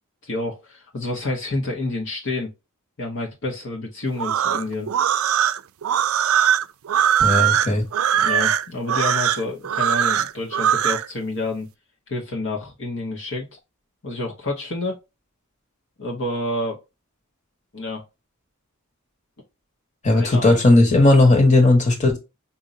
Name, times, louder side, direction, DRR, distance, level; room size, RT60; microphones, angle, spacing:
voice 1, 0.2-2.5 3.0-4.9 8.2-11.7 12.1-13.5 14.0-15.0 16.0-16.8 17.7-18.0 20.1-20.6, left 2 dB, 60° left, 1.2 m, -29 dB
sound 1, 4.1-11.1, right 9 dB, 70° right, 0.4 m, -20 dB
voice 2, 7.2-7.8 20.0-22.2, left 2 dB, 35° left, 1.5 m, -16 dB
5.2 x 2.8 x 2.6 m
head